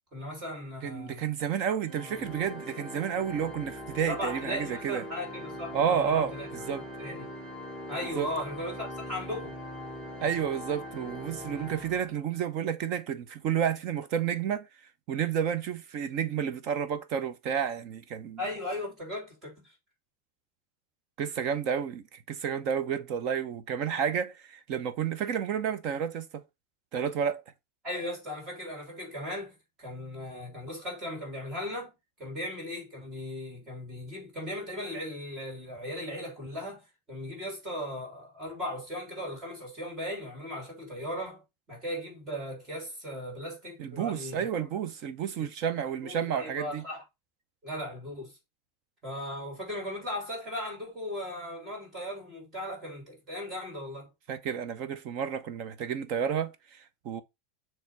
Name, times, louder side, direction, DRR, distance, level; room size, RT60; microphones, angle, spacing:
voice 1, 0.1-1.2 4.1-6.5 7.0-7.3 7.9-9.6 18.4-19.7 27.8-31.9 32.2-44.7 45.4-45.5 46.0-47.0 47.6-48.4 49.0-54.1, left 1 dB, 25° right, 3.2 m, -37 dB
voice 2, 0.8-5.0 5.7-6.3 6.7-6.8 8.1-8.3 10.2-14.7 15.1-18.4 21.2-26.4 26.9-27.4 43.8-46.8 54.3-57.2, right 8 dB, 40° right, 0.8 m, -31 dB
Organ, 1.8-12.5, left 1 dB, 5° right, 1.2 m, -42 dB
7.1 x 3.2 x 4.6 m
supercardioid pair, 170°, 0 cm